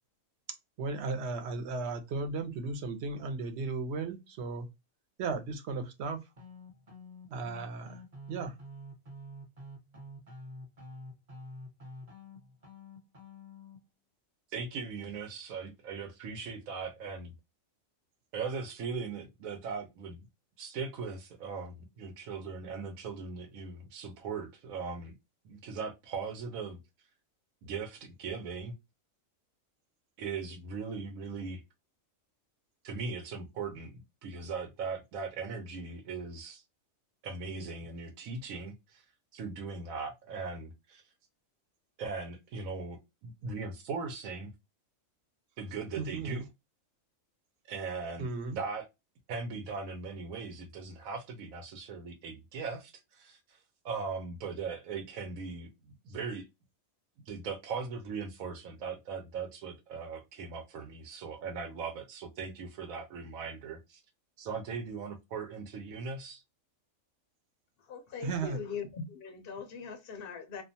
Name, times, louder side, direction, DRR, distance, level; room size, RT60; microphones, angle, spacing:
voice 1, 0.8-4.7 5.2-6.2 7.3-8.0 8.3-8.5 45.9-46.4 48.2-48.6 68.2-68.6, right 3 dB, 60° right, 0.8 m, -35 dB
sound 1, 6.4-13.8, left 1 dB, 35° right, 0.7 m, -48 dB
voice 2, 14.5-17.3 18.3-20.2 20.6-25.1 25.4-26.8 27.6-28.7 30.2-31.6 32.8-36.6 37.2-39.0 39.3-41.0 42.0-44.5 45.6-46.4 47.7-48.9 49.3-53.6 53.8-55.7 56.0-56.5 57.3-64.0 64.4-66.4, right 5 dB, 90° right, 1.0 m, -39 dB
voice 3, 67.9-70.6, left 5 dB, 60° left, 0.6 m, -41 dB
2.4 x 2.2 x 2.6 m
omnidirectional pair, 1.4 m